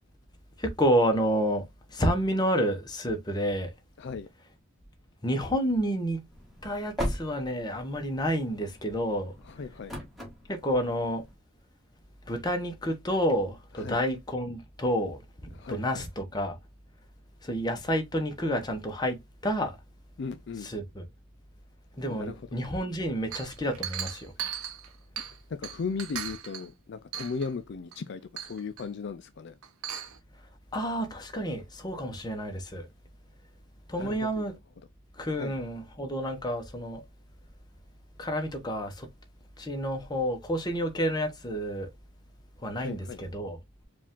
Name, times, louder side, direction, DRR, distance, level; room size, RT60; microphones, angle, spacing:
voice 1, 0.6-3.7 5.2-6.2 6.6-9.3 10.5-11.2 12.3-16.6 17.4-19.2 19.4-19.8 20.6-21.0 22.0-24.3 30.7-32.9 33.9-34.5 35.2-37.0 38.2-39.1 39.6-41.9 42.6-43.6, equal, 20° left, 0.9 m, -29 dB
voice 2, 4.0-4.3 9.4-9.9 13.8-14.0 15.5-16.0 20.2-20.7 22.1-22.4 25.5-29.6 34.0-34.6 35.3-35.6 42.8-43.2, left 5 dB, 55° left, 0.4 m, -37 dB
sound 1, 6.3-11.3, equal, ahead, 1.5 m, -39 dB
Chink clink, 23.3-25.4 25.6-26.7 27.1-27.5 27.9-28.0 28.4-28.9 29.6-30.2, right 9 dB, 90° right, 0.8 m, -37 dB
4.9 x 2.5 x 3.6 m
head